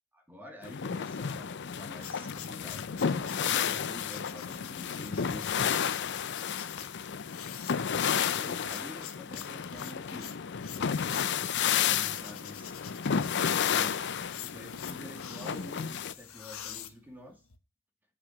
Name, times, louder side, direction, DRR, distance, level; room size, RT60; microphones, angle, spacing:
voice 1, 0.1-5.7 7.3-10.4 11.6-12.8 13.6-14.0 14.4-17.4, left 1 dB, 10° right, 3 dB, 2.3 m, -48 dB
sound 1, 0.6-16.1, left 7 dB, 55° left, 0.6 m, -32 dB
sound 2, 1.7-17.6, left 9 dB, 90° left, 1.1 m, -46 dB
8.1 x 5.9 x 6.4 m, 0.32 s
head